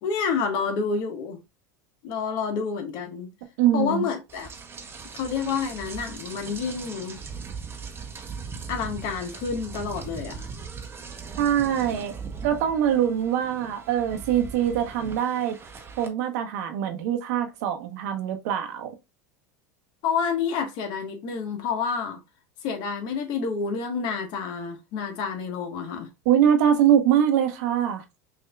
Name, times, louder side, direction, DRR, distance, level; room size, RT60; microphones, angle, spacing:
voice 1, 0.0-1.4 2.0-3.3 3.7-4.5 5.1-7.2 8.7-10.5 20.0-22.2 22.6-26.1, left 5 dB, 55° left, 1.3 m, -29 dB
voice 2, 3.6-4.1 11.4-12.1 12.4-15.5 16.0-18.9 26.2-28.0, right 9 dB, 70° right, 1.0 m, -23 dB
Rain, 4.3-16.1, right 5 dB, 25° right, 0.9 m, -39 dB
5.7 x 2.8 x 2.3 m
hypercardioid pair, 100°, 10 cm